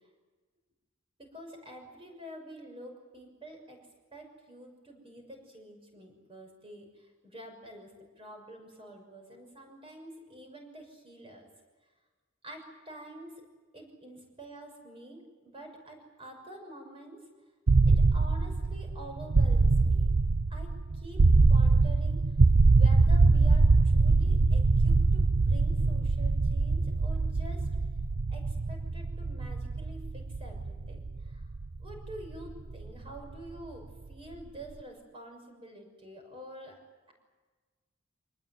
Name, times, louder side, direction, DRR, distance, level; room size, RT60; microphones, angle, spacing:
voice 1, 1.2-3.8 4.1-7.9 8.2-11.5 12.4-13.3 13.7-17.2 17.9-20.1 20.5-21.2 21.5-22.2 22.7-27.7 28.3-31.4 31.8-36.8, right 1 dB, 30° right, 3 dB, 6.3 m, -48 dB
sound 1, 17.7-33.5, right 3 dB, 80° right, 0.8 m, -24 dB
25.0 x 20.0 x 9.4 m, 1.3 s
head